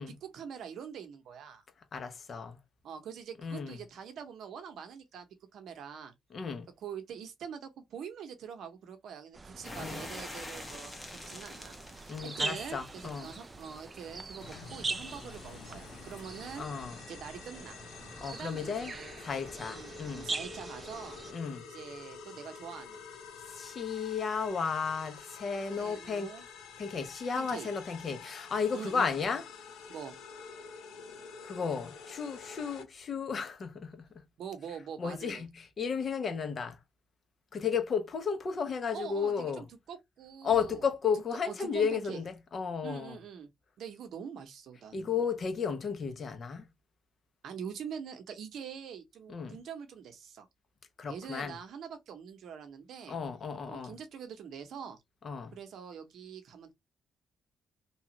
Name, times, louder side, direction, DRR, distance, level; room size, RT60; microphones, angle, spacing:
voice 1, 0.1-1.6 2.8-5.3 5.5-6.1 6.8-16.6 17.1-17.8 18.3-19.2 19.6-21.2 21.6-23.0 25.7-26.4 27.3-27.7 28.7-29.1 29.9-30.2 34.4-35.4 38.9-40.9 41.1-42.2 42.8-43.5 43.8-45.2 47.4-50.5 51.1-53.2 53.7-55.0 55.5-56.7, right 7 dB, 70° right, 0.8 m, -44 dB
voice 2, 1.9-2.6 3.4-3.8 6.3-6.7 9.8-10.0 12.1-13.3 16.6-17.0 18.2-18.9 19.2-20.3 21.3-21.6 23.5-26.3 26.8-29.4 31.4-34.1 35.0-36.8 37.5-39.6 40.4-43.2 44.9-46.7 49.3-49.6 51.0-51.5 53.1-54.0 55.2-55.5, left 6 dB, 45° left, 0.8 m, -33 dB
sound 1, 9.3-21.3, right 3 dB, 25° right, 0.4 m, -42 dB
sound 2, 9.6-16.6, left 1 dB, 15° left, 0.9 m, -48 dB
sound 3, 14.4-32.8, left 5 dB, 90° left, 0.7 m, -48 dB
2.9 x 2.4 x 2.9 m
cardioid pair, 90°, 0 cm